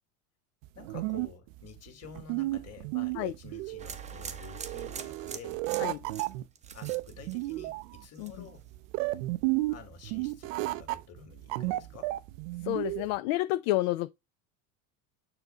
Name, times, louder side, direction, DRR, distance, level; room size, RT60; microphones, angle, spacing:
sound 1, 0.6-13.2, right 19 dB, 65° right, 0.5 m, -33 dB
voice 1, 0.8-5.6 6.7-8.7 9.7-12.1, left 6 dB, 35° left, 2.1 m, -50 dB
sound 2, 3.8-7.8 8.1-8.6, right 7 dB, 15° right, 0.6 m, -43 dB
voice 2, 12.6-14.1, left 17 dB, 60° left, 0.5 m, -29 dB
6.9 x 2.7 x 5.5 m
supercardioid pair, 105°, 43 cm